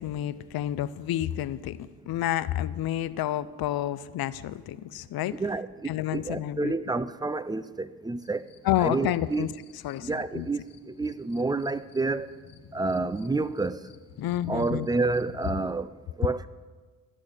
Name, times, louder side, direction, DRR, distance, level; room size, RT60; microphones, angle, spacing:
voice 1, 0.0-5.4 5.8-6.7 8.6-9.5 9.8-10.5 14.2-14.9, left 12 dB, 85° left, 0.6 m, -30 dB
voice 2, 5.3-8.4 8.8-9.5 10.0-12.3 12.7-13.8 14.5-15.9 16.2-16.5, right 3 dB, 10° right, 0.4 m, -29 dB
sound 1, 8.2-15.7, left 7 dB, 65° left, 1.0 m, -49 dB
13.5 x 6.2 x 8.9 m
cardioid pair, 100°, 35 cm